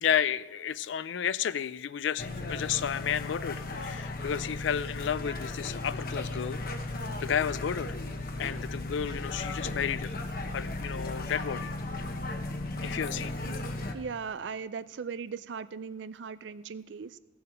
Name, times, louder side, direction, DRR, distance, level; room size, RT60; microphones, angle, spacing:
voice 1, 0.0-6.6 7.2-7.9 8.4-10.2 10.5-11.7 12.8-13.4, left 8 dB, 80° left, 17 dB, 0.4 m, -32 dB
sound 1, 2.2-13.9, left 2 dB, 50° left, 0.9 m, -36 dB
voice 2, 13.9-17.2, right 5 dB, 75° right, 15 dB, 0.4 m, -38 dB
16.0 x 7.0 x 5.0 m, 1.3 s
head